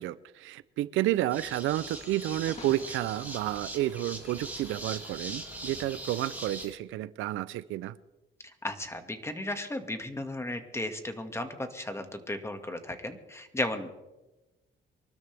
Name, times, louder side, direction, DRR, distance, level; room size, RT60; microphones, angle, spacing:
voice 1, 0.0-7.9, right 14 dB, 90° right, 17 dB, 0.6 m, -31 dB
sound 1, 1.3-6.7, right 2 dB, 10° right, 3.3 m, -41 dB
sound 2, 1.7-6.7, left 4 dB, 85° left, 3.3 m, -55 dB
sound 3, 2.4-4.9, left 4 dB, 35° left, 1.8 m, -51 dB
voice 2, 8.6-13.9, left 1 dB, 15° left, 6 dB, 2.0 m, -35 dB
24.5 x 13.0 x 3.5 m, 1.1 s
cardioid pair, 90°, 20 cm